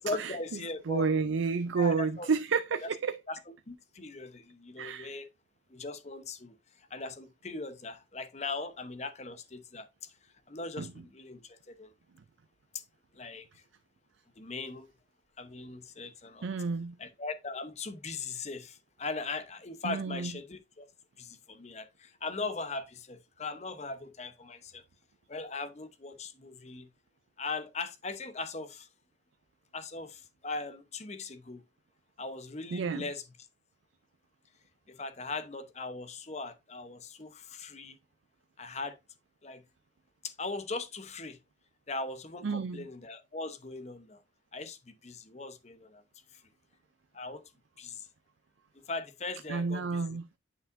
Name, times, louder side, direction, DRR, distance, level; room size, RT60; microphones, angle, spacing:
voice 1, 0.0-1.1 1.8-2.3 2.8-2.9 3.3-3.4 3.7-5.3 5.7-10.1 10.5-11.9 12.7-12.8 13.1-13.6 14.4-14.9 15.4-16.5 17.0-20.9 21.2-24.8 25.3-26.9 27.4-28.9 29.7-31.6 32.2-33.2 34.9-38.0 38.6-39.0 39.4-39.6 40.2-41.4 41.9-44.2 44.5-46.0 46.3-46.4 47.1-47.4 47.8-48.1 48.9-50.2, left 3 dB, 35° left, 0.8 m, -39 dB
voice 2, 0.9-3.2 4.8-5.1 10.8-10.9 16.4-17.0 19.8-20.3 32.7-33.0 42.4-42.9 49.5-50.2, right 5 dB, 80° right, 0.5 m, -30 dB
9.6 x 5.6 x 2.6 m
head